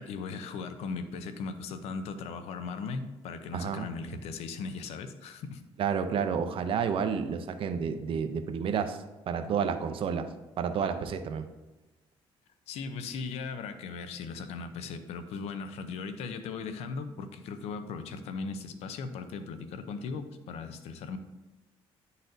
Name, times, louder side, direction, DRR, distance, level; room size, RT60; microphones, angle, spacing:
voice 1, 0.0-5.6 12.7-21.2, left 4 dB, 80° left, 9 dB, 0.6 m, -38 dB
voice 2, 3.5-3.9 5.8-9.0 9.3-10.3 10.6-11.5, right 7 dB, 60° right, 8 dB, 0.6 m, -30 dB
10.0 x 4.1 x 2.6 m, 1.1 s
cardioid pair, 110°, 10 cm